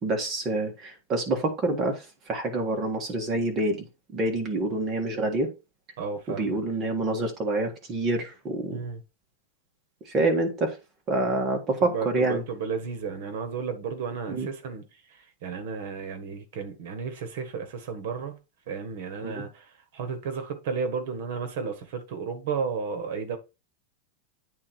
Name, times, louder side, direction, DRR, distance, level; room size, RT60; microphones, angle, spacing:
voice 1, 0.0-3.8 4.1-5.5 6.3-8.8 10.1-10.8 11.1-12.4 14.3-14.5 19.2-19.4, right 2 dB, 20° right, 1.6 m, -27 dB
voice 2, 6.0-6.6 8.7-9.0 11.8-14.8 15.1-18.3 18.7-23.4, right 5 dB, 55° right, 1.5 m, -33 dB
8.7 x 3.8 x 4.4 m
supercardioid pair, 175°, 0 cm